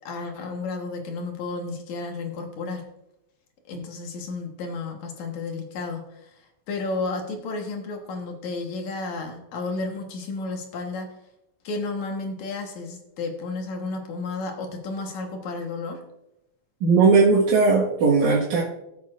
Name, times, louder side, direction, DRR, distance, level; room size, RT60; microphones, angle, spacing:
voice 1, 0.0-2.9 3.7-11.1 11.6-16.0, left 3 dB, 75° left, 2 dB, 2.7 m, -32 dB
voice 2, 16.8-18.6, right 4 dB, 85° right, -6 dB, 3.0 m, -18 dB
16.5 x 8.1 x 2.5 m, 0.87 s
omnidirectional pair, 3.3 m